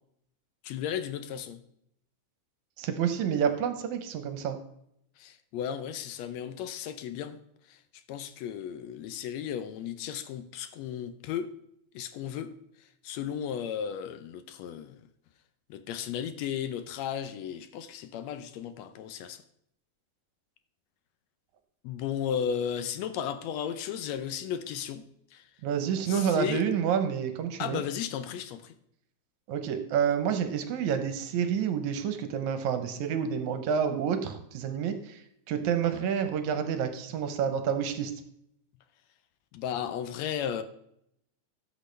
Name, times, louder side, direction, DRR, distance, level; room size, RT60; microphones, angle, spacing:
voice 1, 0.6-1.6 5.2-7.4 8.1-11.5 11.9-12.5 13.0-14.9 15.7-19.4 21.8-25.0 26.1-26.6 27.6-28.7 39.5-40.6, left 8 dB, 75° left, 11 dB, 1.7 m, -34 dB
voice 2, 2.8-4.6 25.6-27.8 29.5-35.2 35.5-38.1, right 8 dB, 75° right, 9 dB, 2.1 m, -29 dB
13.5 x 6.2 x 3.2 m, 0.74 s
omnidirectional pair, 3.5 m